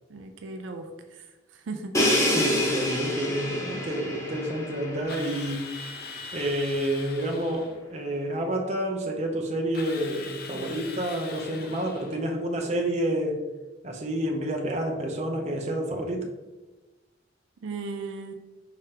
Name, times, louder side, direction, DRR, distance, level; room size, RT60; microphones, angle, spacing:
voice 1, 0.1-2.0 17.6-18.3, right 3 dB, 85° right, 5 dB, 0.4 m, -37 dB
Crash cymbal, 1.9-5.8, left 1 dB, 15° left, 0.8 m, -27 dB
voice 2, 2.3-5.7 6.3-13.4 13.8-16.3, right 1 dB, 35° right, 1 dB, 0.6 m, -29 dB
Drill, 5.1-7.8 9.7-12.2, left 4 dB, 50° left, 0.5 m, -41 dB
4.8 x 3.4 x 2.8 m, 1.1 s
head